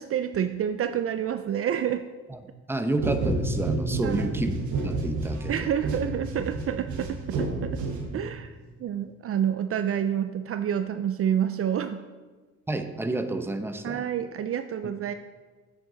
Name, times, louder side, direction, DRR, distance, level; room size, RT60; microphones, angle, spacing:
voice 1, 0.0-2.1 4.0-4.3 5.5-7.8 8.1-12.0 13.8-15.1, right 9 dB, 50° right, 9 dB, 0.4 m, -28 dB
voice 2, 2.7-4.5 4.8-5.7 12.7-14.1, right 2 dB, 10° right, 8 dB, 0.7 m, -30 dB
sound 1, 3.0-8.5, right 2 dB, 70° right, 1.4 m, -30 dB
8.6 x 7.8 x 3.9 m, 1.3 s
cardioid pair, 90°, 30 cm